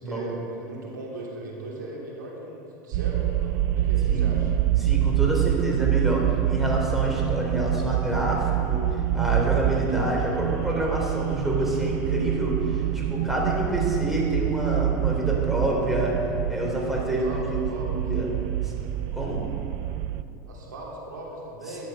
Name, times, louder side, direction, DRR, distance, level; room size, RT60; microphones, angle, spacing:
voice 1, 0.0-4.5 17.2-17.9 20.5-21.9, right 1 dB, 90° right, -3 dB, 3.0 m, -38 dB
sound 1, 2.9-20.2, right 12 dB, 60° right, 0.5 m, -26 dB
voice 2, 4.8-8.8 9.1-16.2 16.5-17.6 17.9-18.3 18.6-18.7 19.1-19.4 21.7-21.9, right 1 dB, 5° right, -3 dB, 3.5 m, -28 dB
12.0 x 10.0 x 5.8 m, 2.8 s
hypercardioid pair, 95°, 10 cm